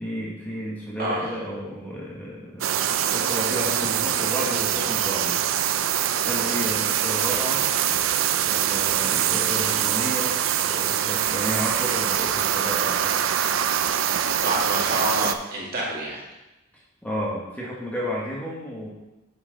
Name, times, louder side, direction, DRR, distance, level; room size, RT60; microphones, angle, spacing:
voice 1, 0.0-5.4 5.7-5.9 6.2-7.6 8.4-10.3 10.6-13.2 16.7-18.9, equal, 5° left, -5 dB, 1.4 m, -32 dB
voice 2, 1.0-1.3 8.6-8.8 14.3-16.2, right 1 dB, 50° right, -4 dB, 2.0 m, -28 dB
sound 1, 2.6-15.4, right 10 dB, 75° right, 0.4 m, -24 dB
8.0 x 5.8 x 4.0 m, 0.99 s
head